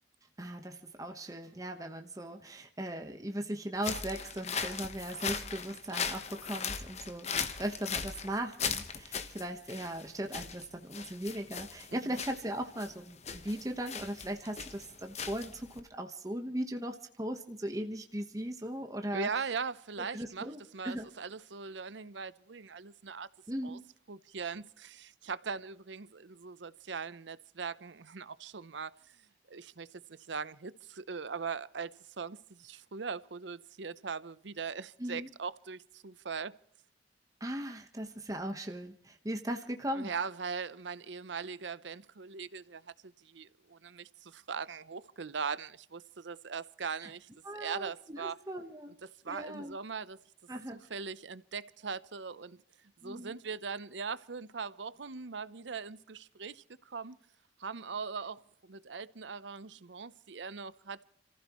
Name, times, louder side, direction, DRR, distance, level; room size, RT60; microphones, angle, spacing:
voice 1, 0.4-19.3 20.1-21.1 23.5-23.8 35.0-35.3 37.4-40.1 47.0-47.1 47.4-49.0 49.3-49.8 50.5-50.8 53.0-53.4, right 1 dB, 20° right, 1.2 m, -38 dB
sound 1, 3.8-15.8, left 6 dB, 35° left, 1.2 m, -39 dB
voice 2, 19.1-23.3 23.6-23.8 24.1-28.9 29.5-36.5 39.9-48.4 49.0-50.2 50.7-52.6 53.0-57.2 57.6-61.0, right 5 dB, 80° right, 0.7 m, -40 dB
30.0 x 15.0 x 3.1 m
head